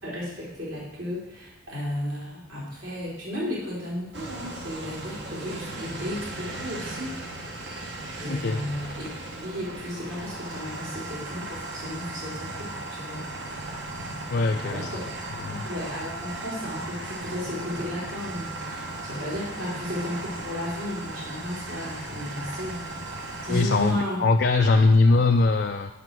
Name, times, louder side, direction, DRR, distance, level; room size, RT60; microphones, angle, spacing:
voice 1, 0.0-7.2 8.2-9.1 9.4-13.3 14.6-15.1 15.5-22.9 23.4-24.2 24.7-25.1, left 1 dB, 70° right, -7 dB, 3.9 m, -34 dB
sound 1, 4.1-23.9, right 2 dB, 55° right, 1.2 m, -37 dB
voice 2, 8.3-8.6 14.3-14.9 15.3-15.6 23.5-25.9, left 3 dB, 50° left, 4 dB, 0.4 m, -21 dB
9.5 x 5.7 x 6.1 m, 0.99 s
head